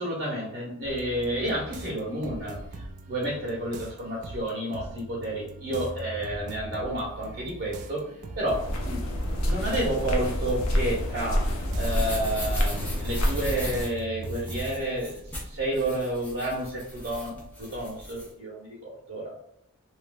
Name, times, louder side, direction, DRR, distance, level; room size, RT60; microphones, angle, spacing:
voice 1, 0.0-2.6 3.1-8.0 8.4-9.1 9.5-19.3, right 1 dB, 55° right, -7 dB, 1.2 m, -30 dB
sound 1, 0.8-14.9, right 2 dB, 35° right, 0.3 m, -41 dB
sound 2, 8.5-13.8, equal, 80° left, 0.6 m, -28 dB
sound 3, 11.3-18.3, equal, 5° left, 0.7 m, -38 dB
3.3 x 2.5 x 2.2 m, 0.75 s
head